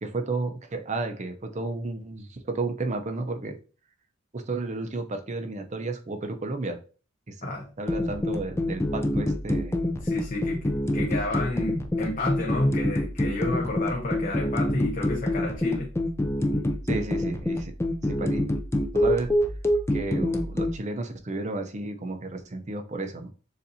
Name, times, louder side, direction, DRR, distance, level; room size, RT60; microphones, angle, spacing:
voice 1, 0.0-3.6 4.3-6.8 7.3-7.5 7.8-9.8 16.8-17.7 18.0-18.4 18.9-19.3 19.9-23.3, right 3 dB, 35° right, 6 dB, 0.6 m, -32 dB
voice 2, 7.4-7.7 10.0-15.9, left 1 dB, 40° left, -1 dB, 0.7 m, -30 dB
sound 1, 7.9-20.8, left 1 dB, 15° left, 0.4 m, -26 dB
6.8 x 2.6 x 2.7 m, 0.36 s
head